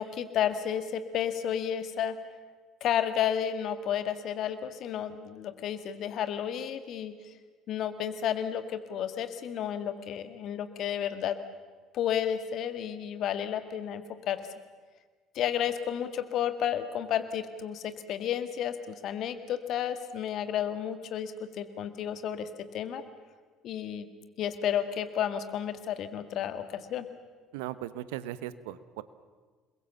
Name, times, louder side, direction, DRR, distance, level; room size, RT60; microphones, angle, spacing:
voice 1, 0.0-2.2 2.8-7.1 7.7-11.4 11.9-14.5 15.3-23.0 23.6-24.1 24.4-27.1, left 9 dB, 55° left, 10 dB, 2.0 m, -32 dB
voice 2, 27.5-29.0, right 13 dB, 75° right, 15 dB, 1.0 m, -38 dB
28.0 x 22.0 x 7.2 m, 1.4 s
hypercardioid pair, 55°, 0 cm